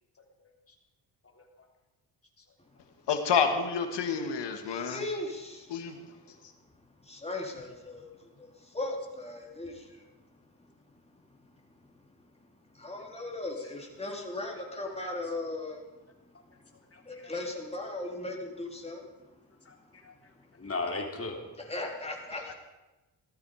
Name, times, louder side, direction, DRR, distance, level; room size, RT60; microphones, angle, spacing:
voice 1, 0.4-0.7 1.3-1.7 2.4-2.5 13.6-13.7 14.5-15.2 16.9-17.4 19.6-21.4, left 3 dB, 30° left, 2 dB, 3.4 m, -40 dB
voice 2, 3.1-5.1 5.7-6.0 22.3-22.5, left 6 dB, 65° left, 6 dB, 2.4 m, -29 dB
voice 3, 4.7-5.7 7.0-10.0 12.7-15.8 17.0-19.0 21.7-22.5, left 2 dB, 15° left, 0 dB, 3.8 m, -37 dB
17.0 x 13.5 x 5.1 m, 1.1 s
cardioid pair, 80°, 45 cm